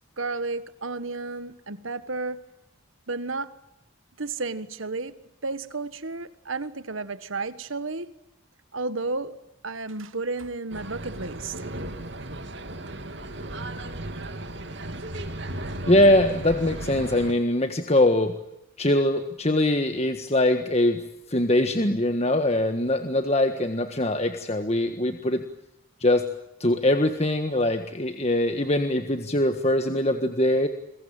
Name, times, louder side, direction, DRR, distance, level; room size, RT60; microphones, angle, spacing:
voice 1, 0.2-2.4 3.1-3.5 4.2-5.2 5.4-8.1 8.7-9.4 9.6-11.7, right 3 dB, 75° right, 1.6 m, -32 dB
sound 1, 10.7-17.3, right 1 dB, 55° right, 2.6 m, -35 dB
voice 2, 15.9-18.3 18.8-21.0 21.3-25.4 26.0-26.3 26.6-30.7, left 1 dB, 30° left, 1.6 m, -22 dB
29.5 x 22.0 x 9.0 m
head